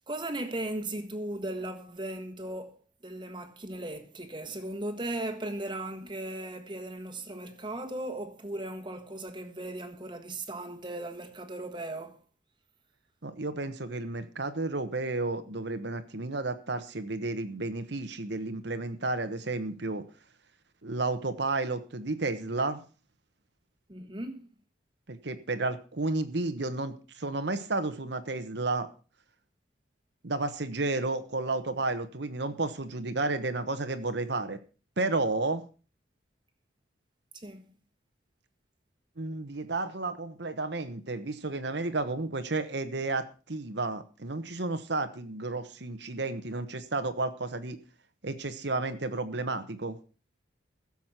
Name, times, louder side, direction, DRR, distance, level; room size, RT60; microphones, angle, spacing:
voice 1, 0.1-12.2 23.9-24.5 37.3-37.7, right 1 dB, 25° right, 1.5 m, -37 dB
voice 2, 13.2-20.1 20.8-22.8 25.1-28.9 30.2-34.6 35.0-35.6 39.2-47.8 48.2-50.0, right 3 dB, 60° right, 1.1 m, -32 dB
15.5 x 7.3 x 5.9 m
head